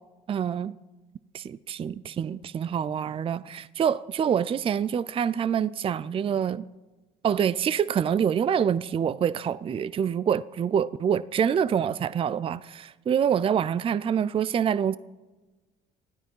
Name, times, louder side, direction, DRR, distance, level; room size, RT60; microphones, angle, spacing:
voice 1, 0.3-0.7 1.3-6.6 7.2-15.0, right 8 dB, 35° right, 0.4 m, -26 dB
20.0 x 13.5 x 5.5 m
cardioid pair, 110°, 17 cm